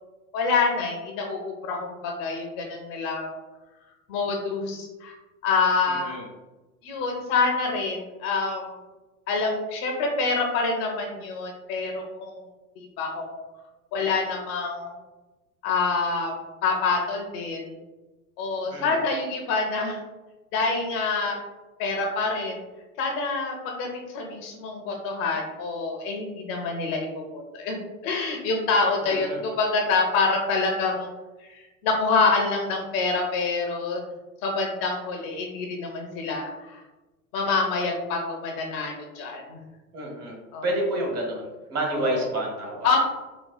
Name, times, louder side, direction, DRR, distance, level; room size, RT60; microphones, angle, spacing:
voice 1, 0.3-3.4 4.1-5.1 5.4-6.1 6.8-8.8 9.3-12.5 12.8-13.4 13.9-14.9 15.6-16.3 16.6-17.8 18.4-20.0 20.5-21.4 21.8-22.6 23.0-31.1 31.4-34.0 34.4-36.8 37.3-39.6 40.5-40.7 41.9-42.3 42.8-43.0, left 4 dB, 45° left, 1 dB, 0.7 m, -26 dB
voice 2, 5.9-6.2 18.7-19.0 29.0-29.4 39.9-40.4 40.6-43.0, right 1 dB, 35° right, 0 dB, 1.1 m, -29 dB
4.2 x 2.3 x 2.2 m, 1.1 s
hypercardioid pair, 95°, 45 cm